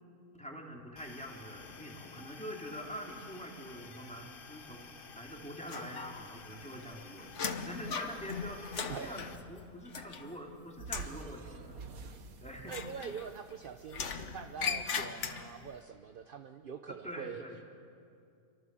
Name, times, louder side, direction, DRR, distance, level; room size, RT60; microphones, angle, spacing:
voice 1, 0.3-7.3 7.6-11.8 12.4-12.7 16.9-17.6, equal, 5° left, 0 dB, 3.1 m, -45 dB
sound 1, 1.0-9.4, left 5 dB, 40° left, 1.1 m, -52 dB
sound 2, 5.7-6.4 6.7-10.5 10.8-11.2 12.6-13.5 13.9-15.7, left 6 dB, 60° left, 1.4 m, -39 dB
voice 2, 8.9-9.3 12.7-17.4, right 7 dB, 45° right, 8 dB, 0.8 m, -44 dB
sound 3, 10.8-15.2, right 4 dB, 75° right, 1.7 m, -49 dB
27.0 x 24.0 x 7.6 m, 2.5 s
omnidirectional pair, 1.5 m